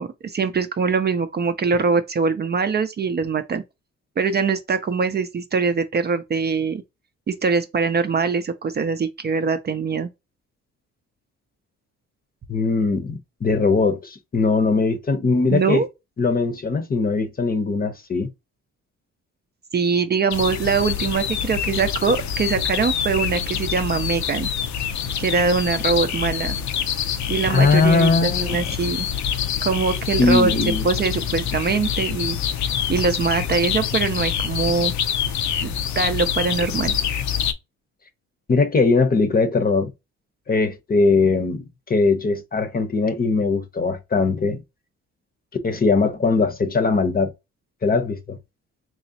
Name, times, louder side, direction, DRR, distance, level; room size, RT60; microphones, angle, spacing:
voice 1, 0.0-3.6 4.2-6.8 7.3-10.1 15.5-15.9 19.7-24.5 25.2-26.6 27.3-29.1 29.6-30.5 30.8-32.4 32.9-34.9 35.6-36.9, right 5 dB, 35° right, 0.5 m, -22 dB
voice 2, 12.5-15.8 16.2-18.3 27.5-28.7 30.2-30.9 38.5-39.9 40.5-44.6 45.6-47.3 47.8-48.4, left 4 dB, 30° left, 0.8 m, -20 dB
sound 1, 20.3-37.5, left 8 dB, 70° left, 0.6 m, -26 dB
3.8 x 3.0 x 2.7 m
cardioid pair, 90°, 30 cm